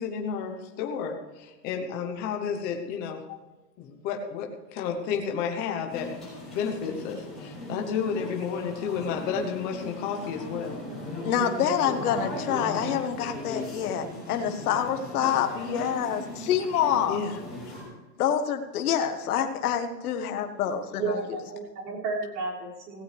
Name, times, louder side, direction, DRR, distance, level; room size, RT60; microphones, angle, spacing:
voice 1, 0.0-3.4 3.8-6.1 6.5-10.7 17.1-17.4, left 6 dB, 20° left, 3 dB, 0.8 m, -31 dB
sound 1, 5.9-17.8, left 1 dB, ahead, 5.9 m, -38 dB
voice 2, 11.2-17.2 18.2-21.0, left 9 dB, 60° left, 6 dB, 1.4 m, -27 dB
voice 3, 21.0-23.0, right 3 dB, 75° right, -4 dB, 5.7 m, -32 dB
16.5 x 16.5 x 3.4 m, 1.1 s
supercardioid pair, 175°, 50 cm